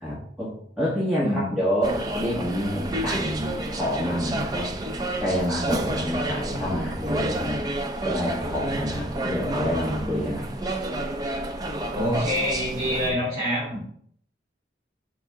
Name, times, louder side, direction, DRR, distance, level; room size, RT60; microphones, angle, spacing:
voice 1, 0.0-0.5 0.8-4.9 5.2-10.4 13.0-13.1, equal, 5° right, -10 dB, 1.6 m, -28 dB
voice 2, 1.2-1.5 11.9-13.8, equal, 40° right, -8 dB, 2.8 m, -26 dB
sound 1, 1.8-13.1, right 1 dB, 20° right, 0.5 m, -30 dB
6.1 x 4.5 x 3.6 m, 0.62 s
head